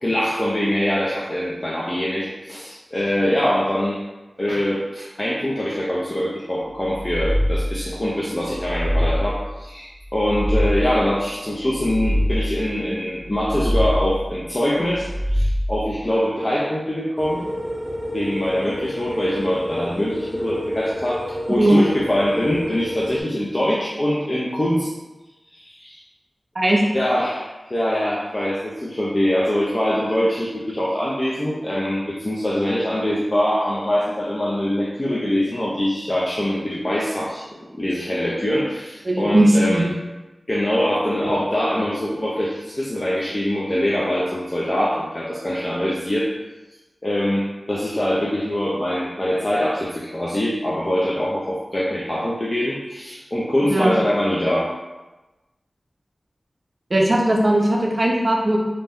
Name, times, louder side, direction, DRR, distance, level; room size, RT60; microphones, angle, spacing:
voice 1, 0.0-4.0 4.4-17.5 18.1-24.9 25.5-26.0 26.9-39.9 40.5-46.3 47.0-54.7, left 1 dB, 35° left, -6 dB, 0.4 m, -23 dB
sound 1, 6.8-7.9 8.4-9.5 10.0-11.1 11.6-12.7 13.2-14.3 14.8-15.9, equal, 90° left, 0.7 m, -24 dB
sound 2, 17.2-23.2, equal, 15° left, 0.9 m, -30 dB
voice 2, 39.0-39.9 53.7-53.9 56.9-58.6, right 1 dB, 50° right, -1 dB, 0.5 m, -17 dB
2.6 x 2.1 x 3.4 m, 1.1 s
wide cardioid pair, 60°, 0 cm